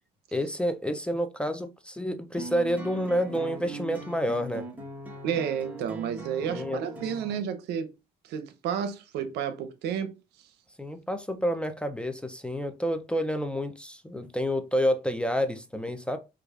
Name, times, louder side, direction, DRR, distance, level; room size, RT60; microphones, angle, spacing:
voice 1, 0.3-4.7 6.4-6.8 10.8-16.2, equal, 5° left, 0.4 m, -29 dB
sound 1, 2.4-7.4, right 1 dB, 10° right, 1.1 m, -40 dB
voice 2, 5.2-7.9 8.3-10.1, right 8 dB, 80° right, 0.6 m, -31 dB
4.7 x 2.4 x 2.3 m
cardioid pair, 110°, 17 cm